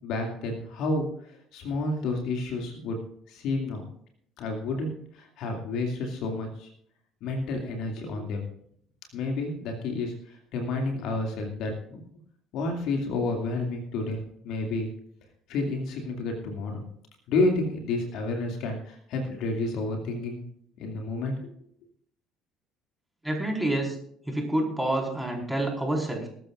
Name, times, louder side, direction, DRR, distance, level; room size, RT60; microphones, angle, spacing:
voice 1, 0.0-3.0 3.3-3.9 4.4-6.7 7.2-8.4 9.1-12.0 12.5-14.9 15.5-16.8 17.3-20.4 20.8-21.5, left 2 dB, 55° left, 2 dB, 2.4 m, -30 dB
voice 2, 23.2-24.0 24.3-26.3, right 1 dB, 5° right, 0 dB, 4.6 m, -28 dB
20.5 x 13.0 x 2.5 m, 0.64 s
figure-of-eight pair, 55°, 0 cm